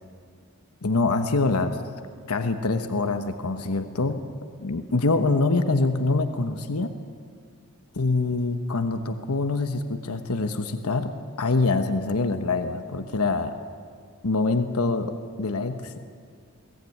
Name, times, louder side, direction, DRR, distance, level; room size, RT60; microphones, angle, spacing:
voice 1, 0.8-1.8 2.3-4.2 4.6-6.9 7.9-13.6 14.2-15.1 15.4-16.0, left 3 dB, 85° left, 7 dB, 1.1 m, -25 dB
22.5 x 17.5 x 9.5 m, 2.1 s
head